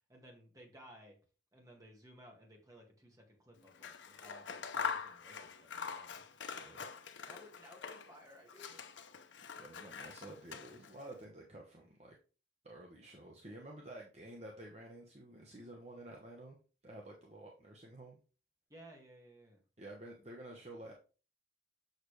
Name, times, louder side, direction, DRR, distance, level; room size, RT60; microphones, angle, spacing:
voice 1, 0.1-1.2 1.5-6.2 7.3-8.8 18.7-19.6, equal, 20° right, 1 dB, 1.7 m, -58 dB
Scissors, 3.7-8.2 8.5-11.0, left 6 dB, 85° left, 0.7 m, -44 dB
voice 2, 6.5-6.9 9.6-12.2 12.6-16.6 16.8-18.2 19.8-20.9, right 1 dB, 35° right, 0 dB, 1.0 m, -51 dB
6.7 x 6.6 x 3.2 m, 0.35 s
head